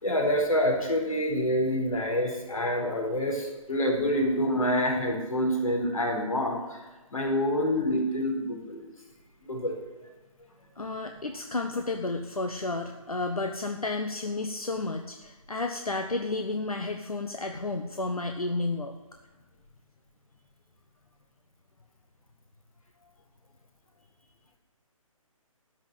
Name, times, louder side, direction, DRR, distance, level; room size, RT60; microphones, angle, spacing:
voice 1, 0.0-6.8 7.1-8.8 9.4-9.7, equal, 70° left, 1 dB, 4.4 m, -27 dB
voice 2, 10.8-18.9, left 2 dB, 90° left, 5 dB, 1.1 m, -32 dB
13.5 x 6.0 x 9.2 m, 1.2 s
figure-of-eight pair, 140°, 18 cm